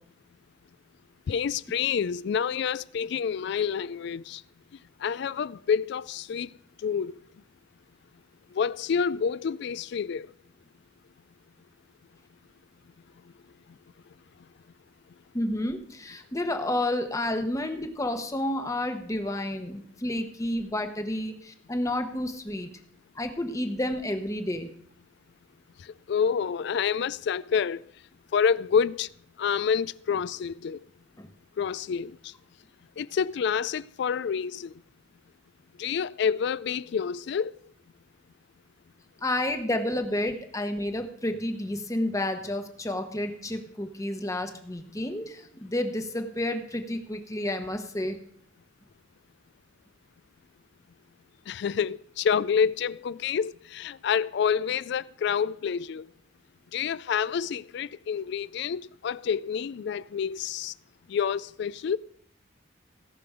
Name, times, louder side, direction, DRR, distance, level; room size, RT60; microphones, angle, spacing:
voice 1, 1.3-4.4 5.0-6.5 6.8-7.2 8.5-10.3 25.8-27.8 28.3-29.1 29.4-30.8 31.6-32.3 33.0-34.7 35.8-37.5 51.5-56.1 56.7-60.7 61.1-62.0, left 7 dB, 60° left, 0.3 m, -28 dB
voice 2, 15.3-22.7 23.1-24.7 31.2-31.3 39.2-48.2, left 1 dB, 15° left, 1.0 m, -30 dB
17.5 x 6.0 x 5.0 m
head